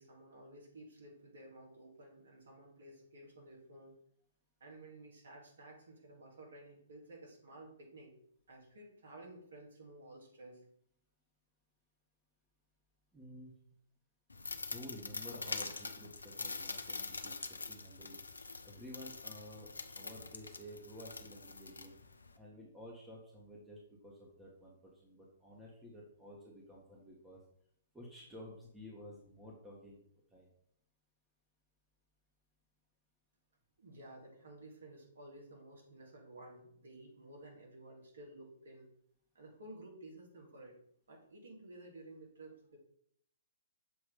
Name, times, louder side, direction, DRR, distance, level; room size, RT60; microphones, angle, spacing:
voice 1, 0.0-4.0 4.6-8.2 8.5-10.6 33.8-38.9 39.3-40.8 41.1-42.8, right 1 dB, 65° right, 0 dB, 2.2 m, -54 dB
voice 2, 13.1-13.5 14.6-22.0 22.3-27.4 27.9-30.0 30.3-30.5, left 1 dB, 10° right, -3 dB, 1.4 m, -52 dB
sound 1, 14.3-22.4, left 3 dB, 85° left, 0.6 m, -44 dB
6.9 x 3.1 x 5.0 m, 0.68 s
figure-of-eight pair, 125°, 0 cm